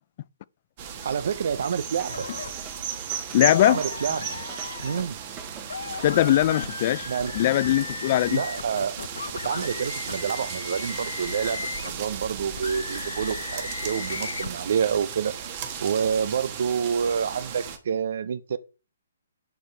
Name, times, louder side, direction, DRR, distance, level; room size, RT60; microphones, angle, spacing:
sound 1, 0.8-17.8, right 7 dB, 40° right, 1.5 m, -36 dB
voice 1, 1.0-2.3 3.6-4.4 4.8-5.2 7.1-7.3 8.3-9.0 9.4-15.3 15.8-18.6, right 7 dB, 60° right, 0.6 m, -28 dB
sound 2, 2.0-8.2, right 6 dB, 20° right, 1.0 m, -47 dB
sound 3, 2.1-2.5 3.5-5.0 5.6-12.0 12.5-14.5, left 5 dB, 80° left, 0.7 m, -36 dB
voice 2, 3.3-3.8 6.0-7.1 7.3-8.4, left 13 dB, 40° left, 0.4 m, -20 dB
10.0 x 4.5 x 3.3 m
hypercardioid pair, 145°, 0 cm